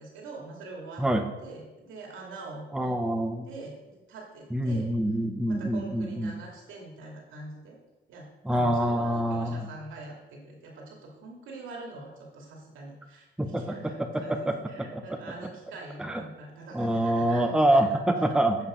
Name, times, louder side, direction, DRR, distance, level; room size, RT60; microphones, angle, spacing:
voice 1, 0.0-1.0 1.4-3.0 3.5-4.9 5.5-7.8 8.1-18.4, right 3 dB, 80° right, -1 dB, 2.3 m, -44 dB
voice 2, 2.7-3.5 4.5-6.3 8.4-9.6 13.4-15.0 16.0-16.2 16.7-18.6, right 1 dB, 5° right, 5 dB, 0.7 m, -26 dB
8.2 x 5.3 x 5.0 m, 1.0 s
cardioid pair, 90°, 20 cm